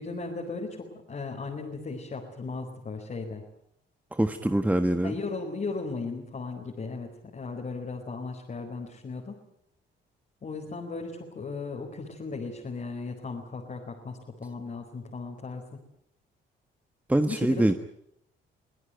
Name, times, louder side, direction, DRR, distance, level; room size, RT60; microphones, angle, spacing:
voice 1, 0.0-3.4 5.0-9.4 10.4-15.6 17.3-17.7, left 4 dB, 40° left, 0 dB, 4.6 m, -36 dB
voice 2, 4.1-5.2 17.1-17.7, right 1 dB, 5° right, 9 dB, 1.3 m, -24 dB
24.5 x 17.0 x 9.2 m, 0.72 s
cardioid pair, 90°, 20 cm